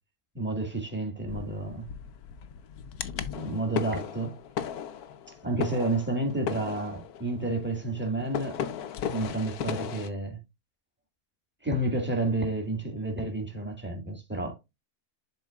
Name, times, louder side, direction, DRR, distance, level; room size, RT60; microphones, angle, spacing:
voice 1, 0.3-1.9 3.3-4.4 5.4-8.6 9.0-10.4 11.6-14.5, right 2 dB, 5° right, 1.8 m, -30 dB
sound 1, 1.3-10.1, left 8 dB, 85° left, 1.3 m, -36 dB
11.0 x 4.4 x 2.4 m
omnidirectional pair, 1.6 m